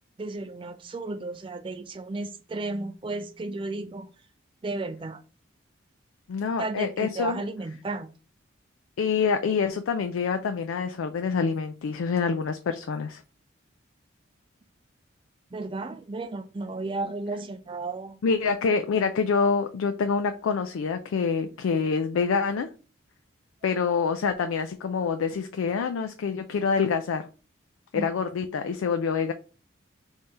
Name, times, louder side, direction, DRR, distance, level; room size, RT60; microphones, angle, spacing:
voice 1, 0.2-4.1 4.6-5.2 6.6-8.1 15.5-18.2 27.9-28.1, right 3 dB, 25° right, 0.3 m, -33 dB
voice 2, 6.3-7.4 9.0-13.2 18.2-22.7 23.6-27.2 27.9-29.3, left 5 dB, 90° left, 0.4 m, -26 dB
3.6 x 2.7 x 4.1 m
head